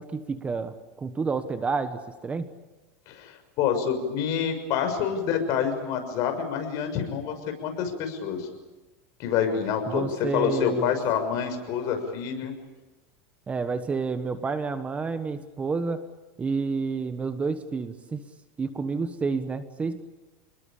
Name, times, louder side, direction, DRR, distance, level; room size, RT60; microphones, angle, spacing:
voice 1, 0.0-2.5 9.9-11.0 12.4-12.5 13.5-16.1 16.4-18.2 18.6-20.0, right 4 dB, 15° right, 10 dB, 1.3 m, -29 dB
voice 2, 3.1-8.5 9.2-10.0 10.3-12.5, left 7 dB, 50° left, 6 dB, 6.4 m, -27 dB
29.5 x 21.0 x 8.7 m, 1.1 s
supercardioid pair, 140°, 8 cm